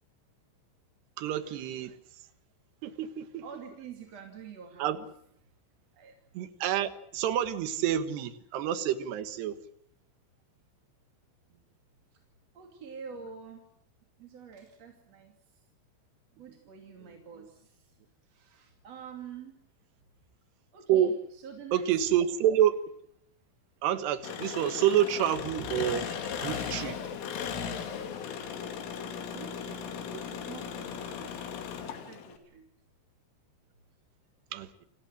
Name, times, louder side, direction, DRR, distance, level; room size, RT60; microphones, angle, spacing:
voice 1, 1.2-1.9 2.8-3.4 4.8-5.0 6.3-9.5 20.9-21.1 21.7-22.8 23.8-27.0 34.5-34.7, right 10 dB, 65° right, 11 dB, 3.2 m, -28 dB
voice 2, 3.4-5.1 5.9-6.2 11.5-11.6 12.1-12.2 12.5-13.6 14.2-15.3 16.3-18.0 18.2-19.6 20.7-22.0 29.3-29.9 30.3-31.5 31.8-32.6, right 6 dB, 40° right, 3 dB, 2.9 m, -47 dB
Engine, 24.2-32.4, left 7 dB, 80° left, 4.9 m, -37 dB
29.0 x 17.5 x 7.5 m, 0.72 s
omnidirectional pair, 5.7 m